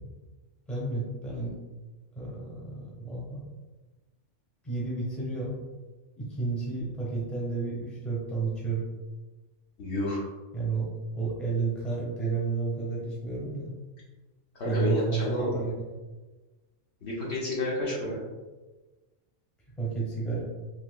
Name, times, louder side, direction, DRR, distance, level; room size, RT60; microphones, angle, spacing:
voice 1, 0.7-1.6 2.1-3.5 4.6-5.6 6.2-8.9 10.5-13.7 14.6-15.9 19.8-20.4, right 4 dB, ahead, -5 dB, 0.7 m, -31 dB
voice 2, 9.8-10.2 14.5-15.6 17.0-18.2, left 1 dB, 60° left, -4 dB, 1.0 m, -30 dB
3.6 x 2.8 x 2.2 m, 1.2 s
omnidirectional pair, 1.3 m